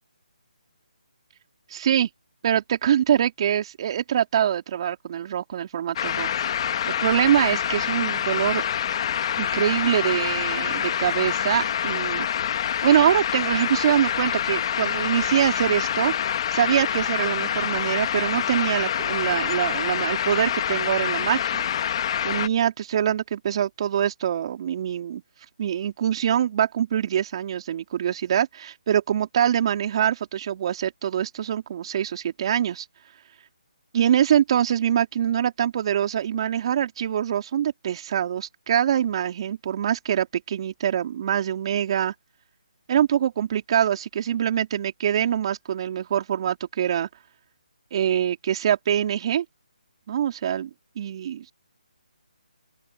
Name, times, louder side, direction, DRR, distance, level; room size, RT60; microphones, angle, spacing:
voice 1, 1.7-2.1 2.4-6.3 6.9-8.6 9.4-12.3 12.8-16.1 16.5-21.7 22.2-25.2 25.6-32.9 33.9-42.1 42.9-47.1 47.9-49.4 50.1-50.7 51.0-51.5, right 10 dB, 40° right, 3.5 m, -24 dB
sound 1, 6.0-22.5, left 9 dB, 40° left, 2.2 m, -26 dB
open air
figure-of-eight pair, 150°, 5 cm